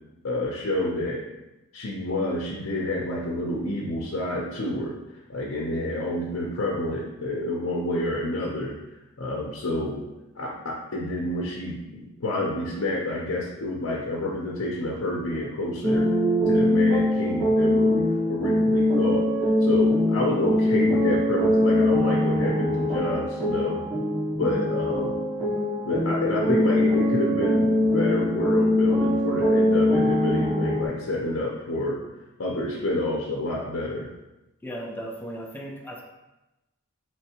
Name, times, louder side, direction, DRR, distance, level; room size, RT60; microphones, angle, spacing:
voice 1, 0.2-1.2 1.7-4.9 5.3-8.8 9.2-10.0 10.4-16.1 16.5-19.2 19.6-23.8 24.3-25.1 25.8-32.0 32.4-34.1, left 1 dB, 75° left, -3 dB, 0.6 m, -28 dB
sound 1, 15.8-30.9, left 1 dB, 45° right, 1.4 m, -22 dB
voice 2, 34.6-36.0, right 1 dB, 10° left, -1 dB, 0.5 m, -36 dB
4.4 x 3.1 x 2.9 m, 0.99 s
head